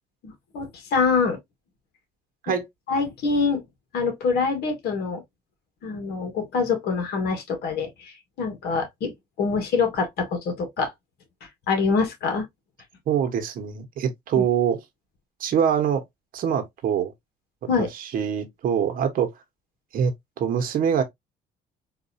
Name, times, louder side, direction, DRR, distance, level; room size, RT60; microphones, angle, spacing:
voice 1, 0.2-1.4 2.9-3.6 3.9-5.2 5.8-10.9 11.4-12.5 14.4-14.5 17.7-17.9, left 5 dB, 70° left, 1.6 m, -25 dB
voice 2, 13.1-14.8 15.4-16.0 16.3-17.1 17.8-19.3 19.9-21.0, right 8 dB, 60° right, 1.1 m, -24 dB
4.0 x 2.6 x 2.7 m
cardioid pair, 110°, 17 cm